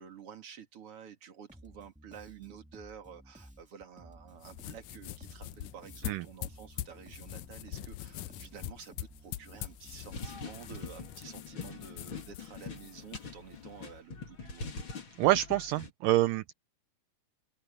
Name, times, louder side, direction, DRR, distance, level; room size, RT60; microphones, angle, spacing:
voice 1, 0.0-14.7, right 7 dB, 45° right, 3.1 m, -50 dB
Bass guitar, 1.5-11.4, equal, 5° right, 0.8 m, -55 dB
sound 1, 4.3-14.0, left 14 dB, 80° left, 1.9 m, -44 dB
sound 2, 10.1-15.9, left 4 dB, 35° left, 3.2 m, -43 dB
voice 2, 15.2-16.5, right 15 dB, 75° right, 2.2 m, -27 dB
open air
omnidirectional pair, 4.1 m